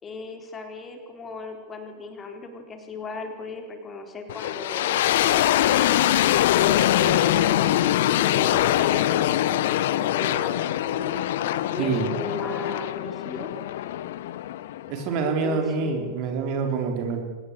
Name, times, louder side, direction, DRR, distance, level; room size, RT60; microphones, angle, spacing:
voice 1, 0.0-6.0 6.6-11.1 11.7-13.5 15.2-16.1, left 3 dB, 20° left, 5 dB, 4.0 m, -36 dB
sound 1, 4.3-15.2, left 13 dB, 55° left, 0.9 m, -23 dB
voice 2, 11.8-12.1 14.9-17.2, right 5 dB, 45° right, 4 dB, 4.1 m, -26 dB
25.0 x 19.5 x 7.9 m, 1.3 s
figure-of-eight pair, 90°, 0 cm